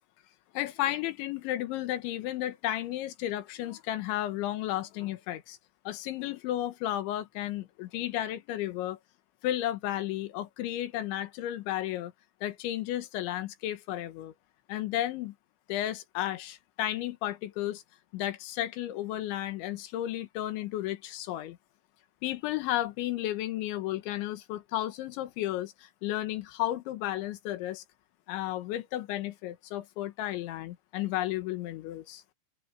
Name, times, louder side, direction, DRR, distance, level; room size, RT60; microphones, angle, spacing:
voice 1, 0.5-5.6 5.9-9.0 9.4-12.1 12.4-14.3 14.7-15.4 15.7-17.8 18.1-21.6 22.2-27.8 28.3-32.2, left 13 dB, 75° left, 3.5 m, -33 dB
omnidirectional pair, 5.7 m